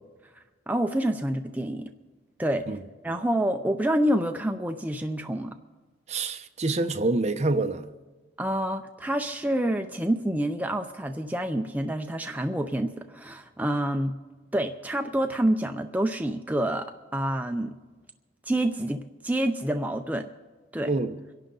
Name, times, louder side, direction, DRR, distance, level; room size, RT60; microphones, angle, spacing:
voice 1, 0.7-1.9 2.4-2.7 3.0-5.6 8.4-14.2 14.5-16.9 17.1-17.8 18.5-20.3 20.7-20.9, right 1 dB, 10° right, 0.5 m, -27 dB
voice 2, 6.1-7.9 20.8-21.2, right 2 dB, 35° right, 0.8 m, -26 dB
25.5 x 11.5 x 3.9 m
head